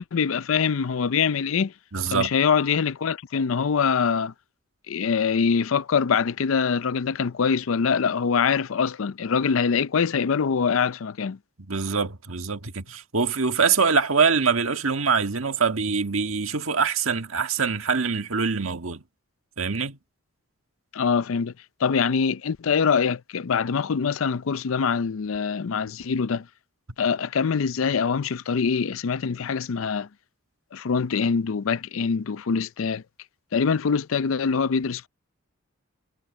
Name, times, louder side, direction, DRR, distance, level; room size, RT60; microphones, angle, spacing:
voice 1, 0.0-1.7 2.1-4.3 4.9-11.4 20.9-21.5 21.8-26.5 27.0-30.1 30.7-33.0 33.5-35.1, left 6 dB, 75° left, 0.5 m, -24 dB
voice 2, 1.9-2.3 11.7-19.0 19.6-20.0, right 5 dB, 80° right, 1.7 m, -24 dB
head